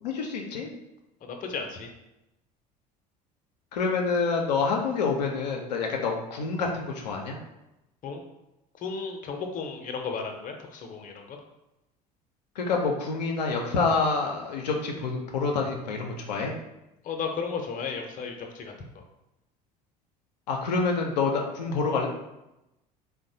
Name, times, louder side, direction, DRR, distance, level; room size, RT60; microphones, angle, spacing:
voice 1, 0.0-0.7 3.7-7.4 12.6-16.5 20.5-22.1, left 4 dB, 90° left, 0 dB, 0.4 m, -27 dB
voice 2, 1.2-1.9 8.0-8.2 8.8-11.4 17.0-19.0, left 5 dB, 40° left, 3 dB, 0.5 m, -34 dB
3.0 x 2.1 x 2.7 m, 0.92 s
hypercardioid pair, 70°, 21 cm